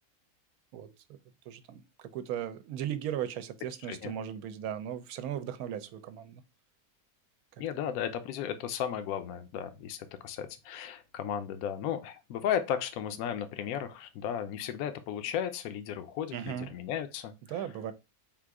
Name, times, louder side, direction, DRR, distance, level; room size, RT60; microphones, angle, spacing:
voice 1, 1.5-6.4 16.3-16.7 17.5-17.9, right 10 dB, 75° right, 1.0 m, -37 dB
voice 2, 7.6-17.7, left 9 dB, 75° left, 1.0 m, -35 dB
3.7 x 2.5 x 4.6 m
omnidirectional pair, 1.6 m